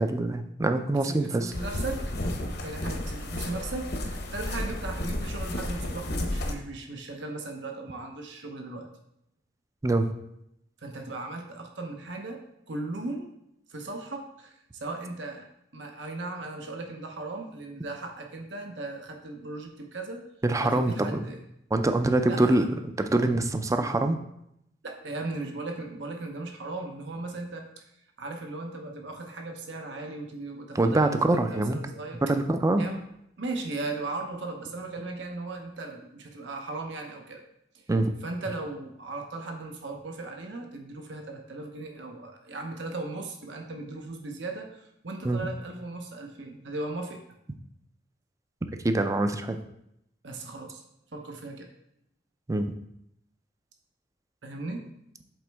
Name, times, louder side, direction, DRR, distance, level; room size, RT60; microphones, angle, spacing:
voice 1, 0.0-1.5 9.8-10.1 20.4-21.3 21.7-24.2 30.7-31.8 32.2-32.8 37.9-38.1 45.2-45.5 48.8-49.6 52.5-52.7, right 2 dB, 15° right, 7 dB, 0.4 m, -24 dB
voice 2, 1.0-2.1 2.6-8.9 10.8-12.4 12.7-13.3 13.7-20.2 20.6-21.4 22.3-22.6 24.8-27.8 28.2-32.2 32.8-33.0 33.4-37.4 37.7-37.8 38.2-47.2 50.2-50.8 51.1-51.7 54.4-54.8, right 2 dB, 75° right, 2 dB, 0.9 m, -37 dB
sound 1, 1.5-6.5, left 1 dB, 60° left, 0.9 m, -32 dB
7.8 x 4.1 x 3.4 m, 0.78 s
head